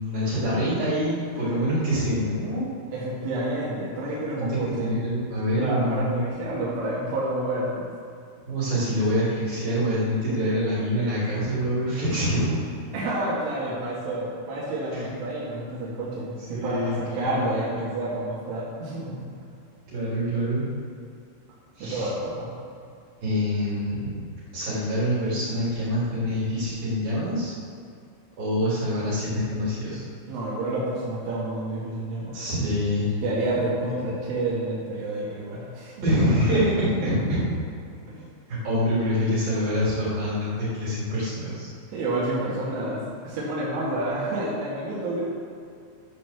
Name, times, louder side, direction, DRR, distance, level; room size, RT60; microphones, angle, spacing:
voice 1, 0.0-2.7 4.4-6.2 8.5-12.6 14.9-15.1 16.5-17.4 19.9-20.7 21.8-22.1 23.2-24.2 24.5-27.5 28.4-30.0 32.3-33.1 36.0-37.4 38.5-41.7, equal, 45° right, -10 dB, 4.9 m, -25 dB
voice 2, 2.9-5.0 5.6-7.9 12.9-19.2 21.8-22.5 30.3-32.4 33.2-35.9 38.1-38.2 41.9-45.3, right 1 dB, 75° right, -9 dB, 4.5 m, -29 dB
11.0 x 7.3 x 7.2 m, 2.4 s
omnidirectional pair, 5.9 m